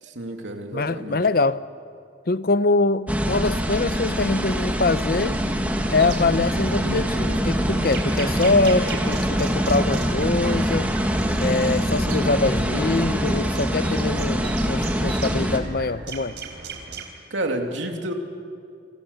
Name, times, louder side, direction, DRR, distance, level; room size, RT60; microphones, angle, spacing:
voice 1, 0.0-1.2 17.3-18.1, right 1 dB, 80° right, 3 dB, 2.9 m, -30 dB
voice 2, 0.7-1.6 2.3-5.4 5.9-10.9 11.4-16.3, left 3 dB, 50° left, 14 dB, 0.7 m, -23 dB
sound 1, 3.1-15.6, equal, 10° right, 1.8 m, -24 dB
sound 2, 6.0-17.0, right 4 dB, 60° right, 4.1 m, -38 dB
29.5 x 25.5 x 7.0 m, 2.3 s
head